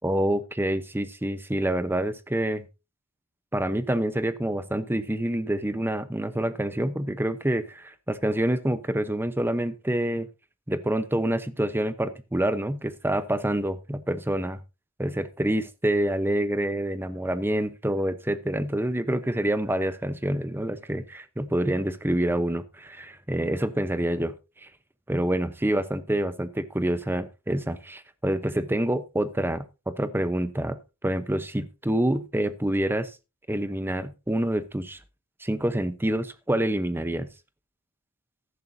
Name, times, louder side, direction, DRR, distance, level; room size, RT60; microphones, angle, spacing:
voice 1, 0.0-2.7 3.5-10.3 10.7-14.6 15.0-24.4 24.6-24.7 25.1-33.2 33.5-35.0 35.4-37.3, right 1 dB, 10° right, 12 dB, 0.8 m, -27 dB
14.5 x 11.0 x 2.7 m, 0.28 s
head